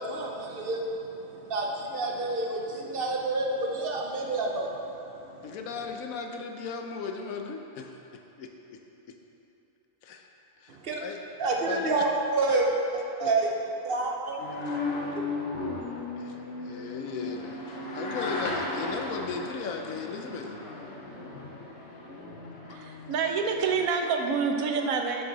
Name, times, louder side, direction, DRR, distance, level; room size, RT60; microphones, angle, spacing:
voice 1, 0.0-4.8 5.2-5.4 10.7-11.0 11.4-12.7 12.9-13.5 13.8-14.4 15.1-15.2, right 3 dB, 50° right, 0 dB, 0.8 m, -29 dB
voice 2, 5.4-8.8 10.0-10.3 10.6-11.2 11.7-12.1 13.2-13.3 14.7-14.8 16.2-16.4 16.6-20.5, left 5 dB, 80° left, 4 dB, 1.1 m, -37 dB
sound 1, 14.4-23.9, left 2 dB, 55° left, 1.1 m, -36 dB
voice 3, 22.7-25.2, right 5 dB, 90° right, 4 dB, 1.1 m, -27 dB
7.3 x 6.1 x 3.9 m, 3.0 s
omnidirectional pair, 1.4 m